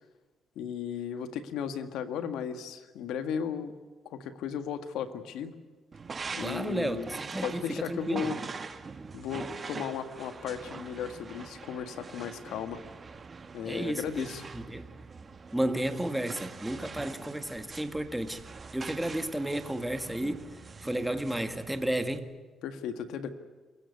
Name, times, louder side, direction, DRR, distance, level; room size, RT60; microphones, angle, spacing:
voice 1, 0.5-3.7 4.0-5.5 6.3-7.1 7.4-8.4 9.1-12.8 13.5-14.5 22.6-23.3, left 8 dB, 85° left, 9 dB, 1.8 m, -35 dB
sound 1, 5.9-22.2, right 4 dB, 35° right, 1.5 m, -43 dB
voice 2, 6.4-8.3 13.7-14.9 15.5-18.4 18.7-20.4 20.8-22.3, right 1 dB, 5° right, 8 dB, 1.9 m, -32 dB
27.5 x 16.5 x 9.7 m, 1.4 s
cardioid pair, 90°, 0 cm